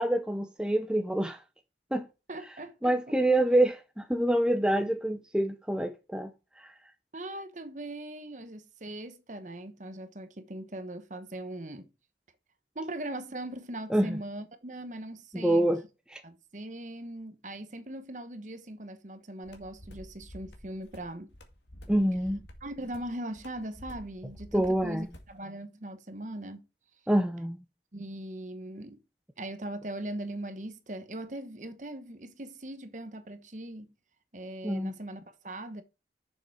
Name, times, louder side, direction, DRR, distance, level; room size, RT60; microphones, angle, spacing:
voice 1, 0.0-1.4 1.9-2.1 2.8-6.3 6.6-6.7 13.9-14.2 15.3-15.8 16.1-16.2 21.9-22.4 24.5-25.1 27.1-27.6 34.6-35.0, right 1 dB, 5° right, 0.6 m, -26 dB
voice 2, 2.3-2.9 7.1-11.9 12.7-15.7 16.2-21.3 22.6-26.7 27.9-29.0 29.4-33.9 34.3-35.8, right 1 dB, 45° right, 1.1 m, -40 dB
sound 1, 19.4-25.4, equal, 90° left, 2.1 m, -50 dB
7.0 x 6.8 x 4.8 m
head